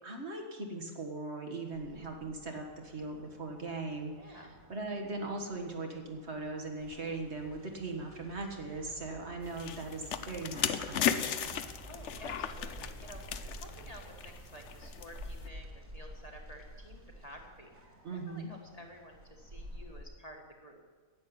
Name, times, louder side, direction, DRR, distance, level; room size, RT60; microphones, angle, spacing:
voice 1, 0.0-11.6 18.0-18.5, right 3 dB, 50° right, 2 dB, 1.8 m, -39 dB
sound 1, 1.7-20.0, equal, 80° right, 2.3 m, -52 dB
voice 2, 4.2-4.5 11.9-17.7 18.1-20.8, equal, 30° left, 1 dB, 1.6 m, -52 dB
sound 2, 6.8-17.9 18.2-18.6 18.9-19.0, right 2 dB, 10° right, 1.6 m, -54 dB
sound 3, 9.5-15.5, left 9 dB, 65° left, 1.0 m, -35 dB
11.0 x 8.6 x 9.7 m, 1.5 s
omnidirectional pair, 1.4 m